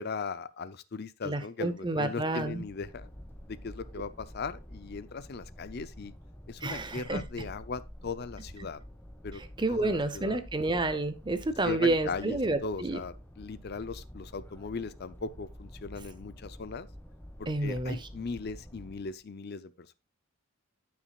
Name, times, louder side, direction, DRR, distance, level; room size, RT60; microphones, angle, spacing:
voice 1, 0.0-3.1 3.5-6.1 6.5-8.8 9.2-9.4 9.7-10.4 11.6-16.9 17.4-19.9, left 4 dB, 45° left, 0.5 m, -38 dB
voice 2, 1.2-2.6 6.6-7.2 9.6-13.0 17.5-18.0, right 2 dB, 20° right, 0.6 m, -29 dB
sound 1, 2.2-19.2, equal, 10° left, 1.5 m, -48 dB
14.0 x 6.0 x 2.3 m
head